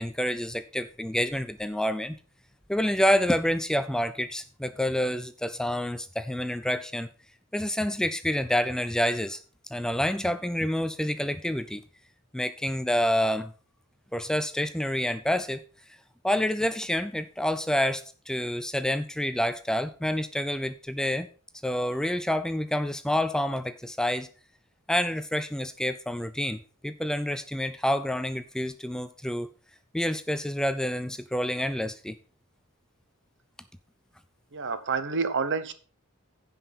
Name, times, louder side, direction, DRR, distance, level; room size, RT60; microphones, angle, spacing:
voice 1, 0.0-2.1 2.7-7.1 7.5-9.4 9.7-11.8 12.3-13.5 14.1-15.6 16.2-21.3 21.6-24.3 24.9-29.5 29.9-32.2, equal, 5° left, 11 dB, 0.4 m, -28 dB
voice 2, 34.5-35.7, right 5 dB, 55° right, 11 dB, 1.0 m, -28 dB
15.0 x 5.5 x 4.1 m, 0.38 s
head